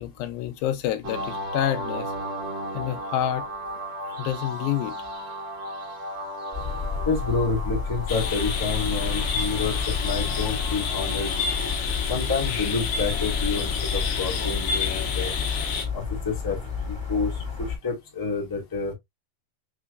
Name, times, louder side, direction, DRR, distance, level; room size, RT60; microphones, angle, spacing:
voice 1, 0.0-2.1 2.7-3.4 4.2-5.0, left 11 dB, 90° left, 2.5 m, -28 dB
sound 1, 1.0-11.8, equal, 55° right, 1.4 m, -35 dB
sound 2, 6.5-17.8, left 5 dB, 5° left, 1.3 m, -30 dB
voice 2, 7.0-11.4 12.1-15.3 15.9-16.6 16.9-18.9, left 4 dB, 20° left, 0.5 m, -29 dB
sound 3, 8.1-15.9, left 6 dB, 70° left, 2.5 m, -30 dB
6.0 x 3.0 x 2.5 m
omnidirectional pair, 4.1 m